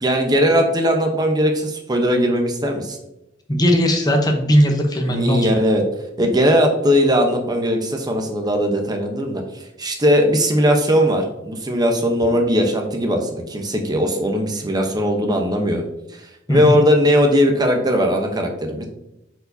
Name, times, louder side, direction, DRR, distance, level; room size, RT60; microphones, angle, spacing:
voice 1, 0.0-3.0 5.1-5.8 6.2-15.8 16.1-18.9, equal, 20° right, 3 dB, 0.8 m, -19 dB
voice 2, 3.5-5.5 16.5-16.8, equal, 20° left, 3 dB, 0.8 m, -18 dB
8.3 x 4.7 x 2.7 m, 0.90 s
head